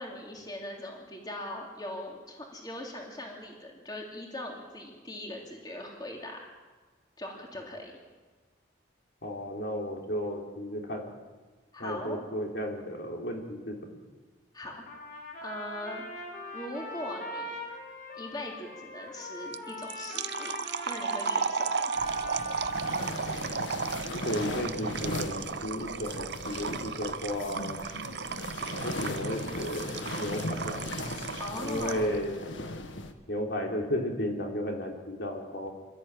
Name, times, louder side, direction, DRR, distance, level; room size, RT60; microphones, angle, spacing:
voice 1, 0.0-6.4 7.2-8.0 11.7-12.2 14.5-14.7 15.4-16.0 16.5-17.6 18.1-20.6 20.9-21.9 31.4-32.1, left 1 dB, 20° left, 0 dB, 3.2 m, -40 dB
voice 2, 9.2-11.1 11.8-14.0 24.1-27.8 28.8-30.8 31.6-32.3 33.3-35.7, equal, 60° left, 1 dB, 3.5 m, -34 dB
Trumpet, 14.9-23.3, left 2 dB, 45° left, 5.4 m, -41 dB
sound 1, 19.5-32.2, right 5 dB, 60° right, 0.7 m, -35 dB
sound 2, 21.9-33.1, left 2 dB, 80° left, 1.7 m, -38 dB
27.0 x 13.5 x 9.1 m, 1.4 s
head